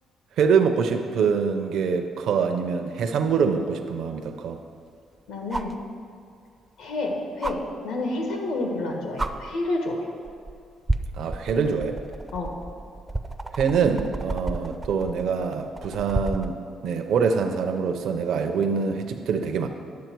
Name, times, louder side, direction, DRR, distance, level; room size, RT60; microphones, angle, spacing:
voice 1, 0.4-4.6 11.2-12.0 13.5-16.6 16.8-19.7, right 6 dB, 70° right, 5 dB, 0.6 m, -24 dB
sound 1, 3.3-3.4 5.5-5.8 7.4-7.5 8.7-8.8 9.2-9.3 10.2-10.5 10.9-16.5 18.2-18.3, right 2 dB, 15° right, 0.4 m, -31 dB
voice 2, 5.3-5.7 6.8-10.0 12.3-12.5, left 2 dB, 85° left, 1 dB, 1.6 m, -29 dB
10.5 x 7.3 x 4.6 m, 2.4 s
cardioid pair, 135°, 0 cm